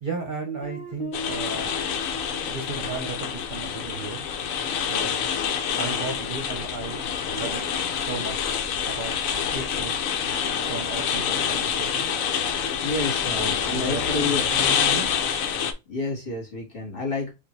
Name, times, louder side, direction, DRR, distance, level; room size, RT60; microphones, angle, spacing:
voice 1, 0.0-1.8 2.5-4.3 4.9-5.1 5.8-8.5 8.9-10.0 10.7-12.1 13.4-15.1, right 4 dB, 40° right, 0.9 m, -35 dB
Guitar, 0.6-5.3, left 1 dB, 20° left, 0.8 m, -41 dB
sound 1, 1.1-15.7, left 7 dB, 80° left, 1.1 m, -27 dB
voice 2, 12.8-14.5 15.9-17.3, left 3 dB, 40° left, 2.2 m, -29 dB
4.9 x 2.6 x 3.2 m
omnidirectional pair, 1.4 m